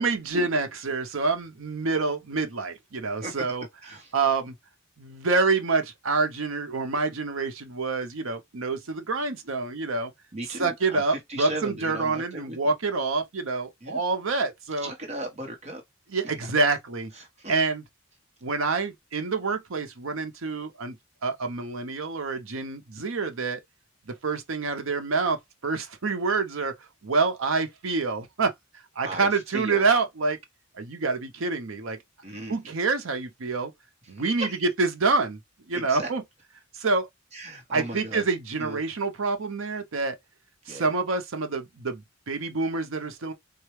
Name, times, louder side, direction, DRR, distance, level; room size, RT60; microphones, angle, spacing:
voice 1, 0.0-3.7 4.1-4.5 5.0-10.1 10.6-14.9 16.1-17.1 17.5-17.8 18.4-21.0 21.2-23.6 24.1-26.7 27.0-28.5 29.0-30.4 30.8-32.0 32.5-33.7 34.1-34.5 34.8-35.4 35.7-36.2 36.7-37.1 37.7-40.2 40.7-43.3, right 3 dB, 75° right, 0.7 m, -27 dB
voice 2, 3.0-3.4 3.8-4.1 10.3-12.6 13.8-14.0 14.8-15.8 17.1-17.5 29.0-29.9 32.2-32.6 34.1-34.6 35.7-36.1 37.3-38.3 38.6-38.8 40.7-40.9, right 1 dB, 35° right, 1.0 m, -37 dB
4.2 x 2.3 x 3.1 m
head